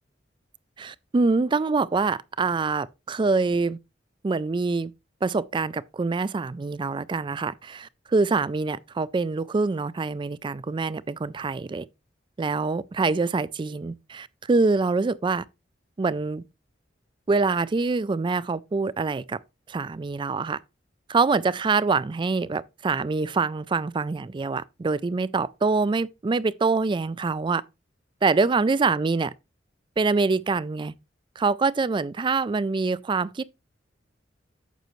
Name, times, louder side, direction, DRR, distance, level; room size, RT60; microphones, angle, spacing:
voice 1, 0.8-3.8 4.2-4.9 5.2-11.9 12.4-15.4 16.0-16.4 17.3-19.4 19.7-20.6 21.1-27.6 28.2-29.3 30.0-30.9 31.4-33.4, right 4 dB, 25° right, 0.3 m, -25 dB
9.2 x 6.5 x 3.1 m
head